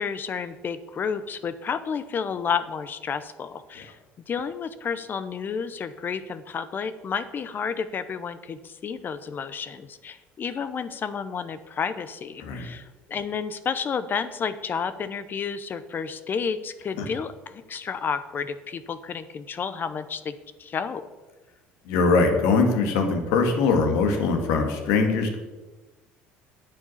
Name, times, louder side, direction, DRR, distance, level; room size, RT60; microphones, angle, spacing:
voice 1, 0.0-4.0 4.3-21.1, left 6 dB, 40° left, 12 dB, 0.8 m, -31 dB
voice 2, 21.9-25.4, left 4 dB, 80° left, 4 dB, 2.1 m, -22 dB
8.9 x 7.3 x 7.3 m, 1.2 s
supercardioid pair, 85°, 5 cm